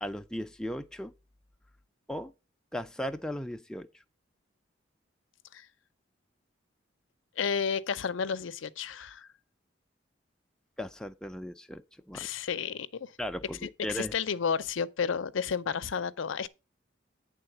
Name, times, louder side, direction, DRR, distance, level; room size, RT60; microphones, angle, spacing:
voice 1, 0.0-1.1 2.1-2.3 2.7-4.0 10.8-12.3 13.2-14.1, equal, 5° left, 0.4 m, -37 dB
voice 2, 7.4-9.3 12.1-13.1 13.6-16.5, left 6 dB, 80° left, 0.5 m, -32 dB
8.8 x 3.7 x 6.5 m
head